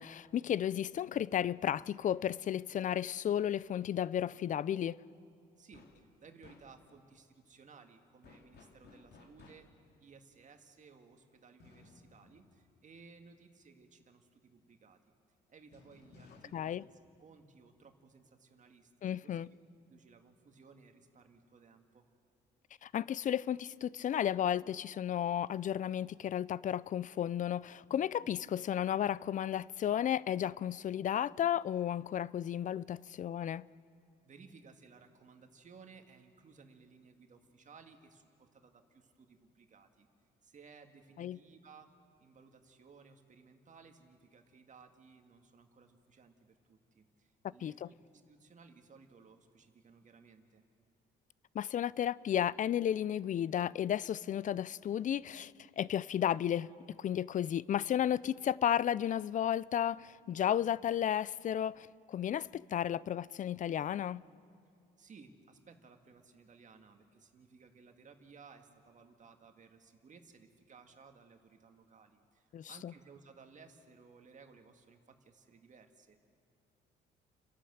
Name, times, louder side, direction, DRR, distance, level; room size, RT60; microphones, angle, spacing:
voice 1, 0.0-5.0 16.5-16.8 19.0-19.5 22.8-33.6 41.2-41.4 47.6-47.9 51.5-64.2 72.5-72.9, left 10 dB, 45° left, 0.4 m, -33 dB
voice 2, 5.6-9.7 10.0-15.1 15.5-19.4 19.9-22.1 34.2-40.1 40.4-48.0 48.3-50.6 65.0-76.3, right 5 dB, 45° right, 1.9 m, -59 dB
sound 1, 5.7-6.1 6.4-7.0 8.2-9.9 11.6-13.4 15.7-17.8, left 3 dB, 65° left, 2.7 m, -60 dB
29.5 x 11.5 x 7.9 m
cardioid pair, 85°, 18 cm